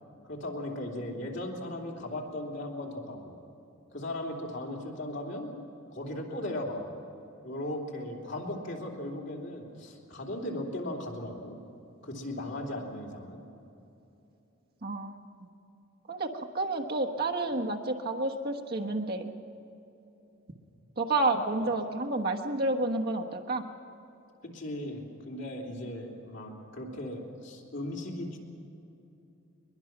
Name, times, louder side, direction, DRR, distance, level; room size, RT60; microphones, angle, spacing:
voice 1, 0.2-3.4 3.9-5.5 5.9-6.9 7.4-11.6 12.0-13.4 21.6-21.7 24.4-28.4, left 1 dB, 60° left, -1 dB, 3.2 m, -37 dB
voice 2, 14.8-15.5 16.1-19.3 21.0-23.6, right 2 dB, 50° right, 2 dB, 1.3 m, -30 dB
22.0 x 22.0 x 6.0 m, 2.9 s
head